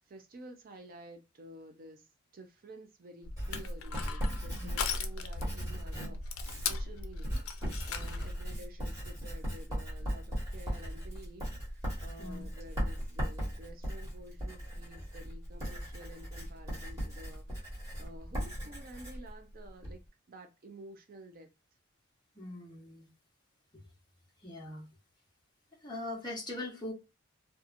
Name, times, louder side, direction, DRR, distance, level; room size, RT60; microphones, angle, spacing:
voice 1, 0.0-20.0 20.3-21.5, right 1 dB, 45° right, 0.5 m, -51 dB
Crushing, 3.2-8.4, left 5 dB, 80° left, 0.5 m, -38 dB
Writing, 3.4-20.0, equal, 15° right, 1.4 m, -38 dB
voice 2, 22.3-23.1 23.7-23.8 24.4-24.9 25.7-26.9, left 2 dB, 20° left, 1.0 m, -41 dB
2.7 x 2.3 x 2.5 m
head